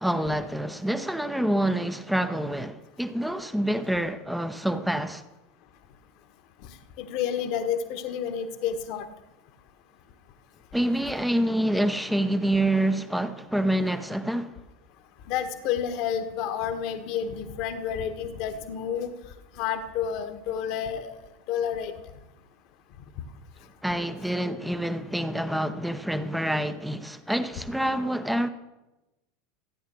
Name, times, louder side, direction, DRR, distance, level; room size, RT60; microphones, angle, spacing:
voice 1, 0.0-5.2 10.7-14.6 23.8-28.5, right 1 dB, ahead, 0.8 m, -27 dB
voice 2, 7.0-9.1 15.3-19.1 19.6-21.1 21.5-21.9, left 8 dB, 50° left, 1.4 m, -30 dB
15.0 x 9.3 x 6.2 m
figure-of-eight pair, 80°, 0 cm